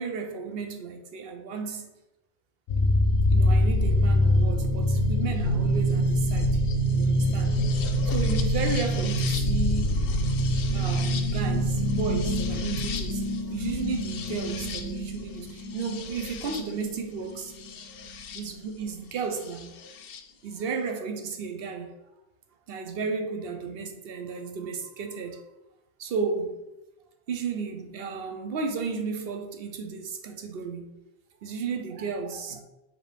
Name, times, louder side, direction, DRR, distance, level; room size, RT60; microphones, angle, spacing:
voice 1, 0.0-1.9 3.3-6.6 7.0-7.6 8.0-10.1 10.7-17.5 18.3-19.7 20.4-21.9 22.7-25.4 26.0-26.6 27.3-31.0 31.4-32.6, right 5 dB, 70° right, 0.9 m, -33 dB
sound 1, 2.7-18.4 19.6-20.2, equal, 70° left, 0.7 m, -25 dB
5.1 x 2.9 x 3.3 m
omnidirectional pair, 1.0 m